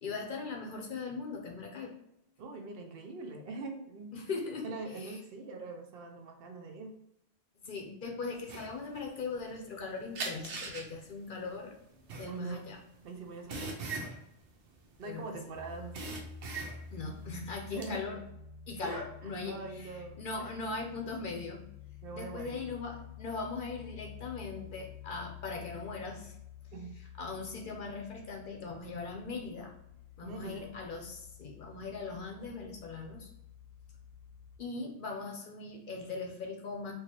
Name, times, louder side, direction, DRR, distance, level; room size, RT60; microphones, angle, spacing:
voice 1, 0.0-1.9 4.1-4.7 5.0-5.2 7.6-11.7 12.2-12.8 15.1-15.4 16.9-18.2 18.7-19.9 20.2-21.6 22.1-26.3 27.2-29.7 30.2-33.3 34.6-36.9, left 4 dB, 55° left, 1 dB, 0.7 m, -40 dB
voice 2, 2.4-4.1 4.6-6.9 12.3-12.6 13.0-13.8 15.0-16.2 17.7-18.0 18.8-20.6 22.0-22.7 26.7-26.9 30.2-30.7, right 3 dB, 65° right, 4 dB, 0.7 m, -43 dB
sound 1, 8.5-9.8 10.2-15.4 15.7-17.1 17.4-17.9, right 3 dB, 85° right, 1.0 m, -40 dB
sound 2, 15.5-34.6, left 7 dB, 75° left, 0.9 m, -50 dB
4.6 x 2.4 x 2.9 m, 0.83 s
omnidirectional pair, 1.1 m